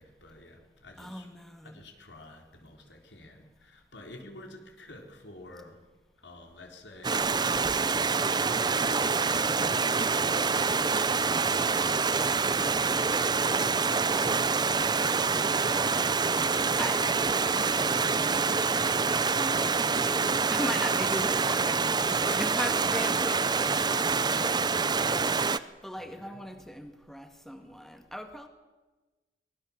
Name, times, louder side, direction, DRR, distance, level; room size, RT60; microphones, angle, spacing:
voice 1, 0.0-1.3 1.6-5.8 6.2-7.4 7.9-14.0 19.7-20.0 26.0-26.4, left 1 dB, 80° left, 3 dB, 4.1 m, -50 dB
voice 2, 1.0-1.8 14.9-28.5, equal, ahead, 6 dB, 1.9 m, -40 dB
Stream, 7.0-25.6, right 4 dB, 25° right, 0.6 m, -26 dB
24.5 x 20.0 x 7.4 m, 1.2 s
head